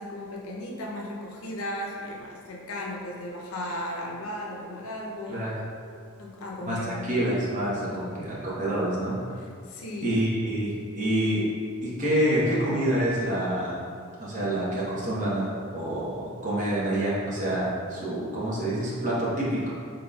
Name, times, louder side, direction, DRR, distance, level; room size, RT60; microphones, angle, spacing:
voice 1, 0.0-5.5 6.2-7.3 7.9-8.2 9.7-10.2, left 1 dB, 75° left, -2 dB, 0.6 m, -36 dB
voice 2, 6.7-9.2 10.0-11.4 11.8-13.8 14.2-15.4 15.7-19.7, right 1 dB, 35° right, -8 dB, 0.9 m, -27 dB
3.9 x 3.8 x 2.3 m, 2.2 s
head